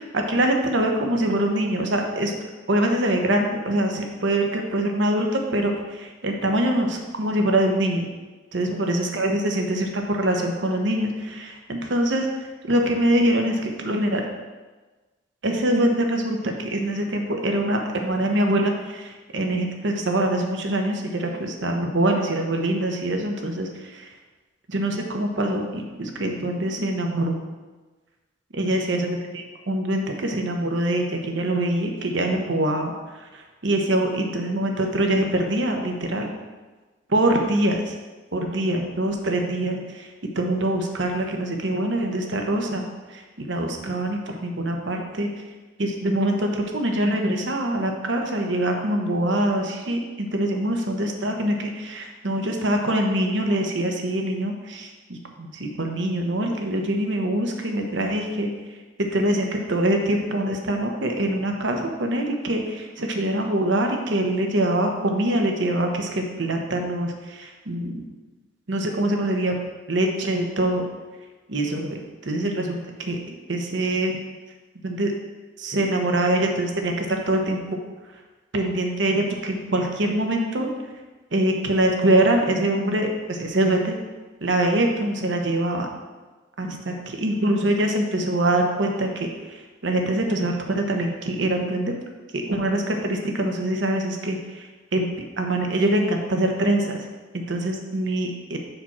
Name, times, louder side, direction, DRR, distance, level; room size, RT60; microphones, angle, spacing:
voice 1, 0.0-2.4 2.7-8.1 8.5-12.3 12.7-14.2 15.4-24.1 24.7-27.4 28.5-32.9 33.3-36.3 37.1-37.9 38.3-40.1 40.4-42.8 43.1-45.3 45.8-58.5 59.0-68.0 68.7-69.6 69.9-70.8 71.5-74.2 74.8-75.1 75.6-77.6 78.5-80.7 81.3-84.0 84.4-85.9 86.6-91.9 92.3-94.7 94.9-95.1 95.4-97.1 97.3-98.6, right 1 dB, 65° right, 3 dB, 0.9 m, -24 dB
5.0 x 4.2 x 5.9 m, 1.2 s
head